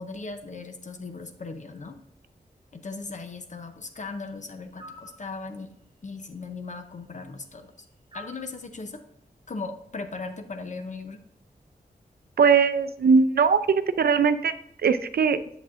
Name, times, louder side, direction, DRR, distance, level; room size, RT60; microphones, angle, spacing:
voice 1, 0.0-2.0 2.7-5.7 6.0-7.7 8.1-9.0 9.5-11.2, left 3 dB, 50° left, 7 dB, 0.6 m, -38 dB
sound 1, 4.8-5.2 8.1-8.5, equal, 35° right, 1.1 m, -45 dB
voice 2, 12.4-14.5 14.8-15.4, right 5 dB, 75° right, 11 dB, 0.4 m, -20 dB
8.1 x 7.2 x 2.5 m, 0.75 s
wide cardioid pair, 105°, 16 cm